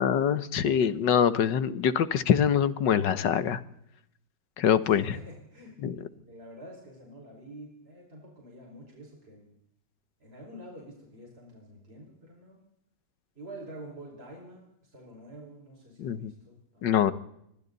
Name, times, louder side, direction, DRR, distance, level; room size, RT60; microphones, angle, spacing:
voice 1, 0.0-3.6 4.6-5.1 5.8-5.9 16.0-16.3 16.8-17.1, left 8 dB, 70° left, 14 dB, 1.8 m, -24 dB
voice 2, 4.9-9.5 10.2-12.6 13.4-16.9, right 1 dB, 30° right, -1 dB, 5.7 m, -48 dB
27.0 x 24.5 x 4.1 m, 0.77 s
omnidirectional pair, 2.0 m